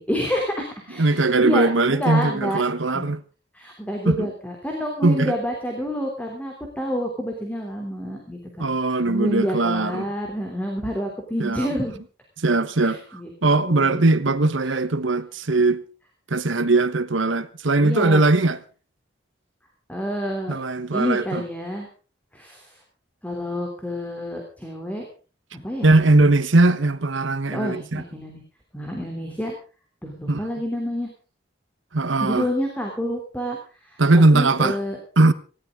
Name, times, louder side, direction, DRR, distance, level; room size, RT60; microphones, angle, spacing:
voice 1, 0.0-2.6 2.9-3.1 3.5-8.7 9.1-12.0 12.8-14.0 17.8-18.2 19.9-20.6 20.9-21.9 22.3-22.8 23.2-25.0 25.5-25.9 27.5-28.4 28.7-29.5 30.0-31.1 32.2-35.0, equal, 10° left, 3.1 m, -28 dB
voice 2, 1.0-3.2 4.0-4.3 5.0-5.4 8.6-10.1 11.4-11.7 12.4-13.0 13.4-15.8 16.3-18.6 20.5-21.4 25.8-28.0 30.3-30.4 31.9-32.5 34.0-34.8 35.2-35.3, right 2 dB, 85° right, 1.2 m, -20 dB
19.0 x 16.0 x 3.7 m
head